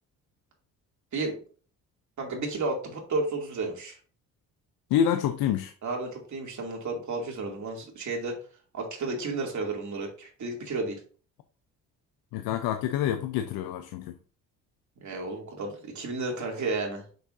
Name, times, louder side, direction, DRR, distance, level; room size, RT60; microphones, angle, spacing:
voice 1, 2.2-4.0 5.8-8.4 8.7-11.0 15.0-17.1, right 3 dB, 50° right, 2.8 m, -32 dB
voice 2, 4.9-5.7 12.3-14.1, left 9 dB, 75° left, 0.7 m, -27 dB
6.5 x 6.3 x 2.7 m
supercardioid pair, 65°, 36 cm